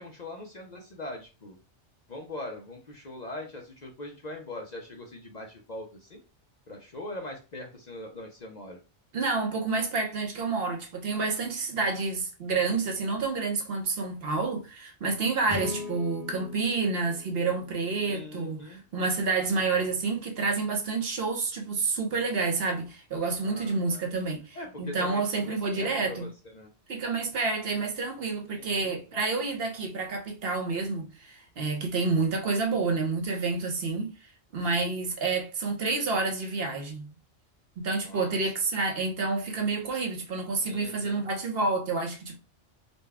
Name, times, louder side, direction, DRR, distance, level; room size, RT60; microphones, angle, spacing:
voice 1, 0.0-1.6 2.1-6.2 6.7-8.8 18.0-18.8 23.4-24.1 24.5-26.7 28.6-28.9 38.0-38.3 40.6-41.2, left 1 dB, 45° left, 0.6 m, -41 dB
voice 2, 9.1-26.3 26.9-37.1 37.8-42.4, right 4 dB, 60° right, 0.9 m, -29 dB
sound 1, 15.5-18.8, left 3 dB, 10° right, 0.8 m, -40 dB
4.0 x 2.2 x 3.4 m
omnidirectional pair, 1.2 m